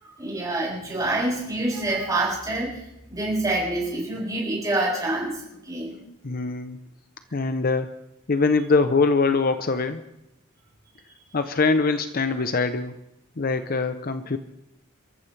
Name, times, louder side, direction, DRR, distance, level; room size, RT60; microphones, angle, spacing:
voice 1, 0.2-2.8 3.1-5.4 5.7-6.0, right 2 dB, 15° right, -5 dB, 7.3 m, -26 dB
voice 2, 6.1-6.8 7.3-7.9 8.3-10.0 11.3-12.9 13.4-14.4, left 4 dB, 45° left, 9 dB, 0.7 m, -23 dB
29.0 x 14.5 x 3.3 m, 0.83 s
head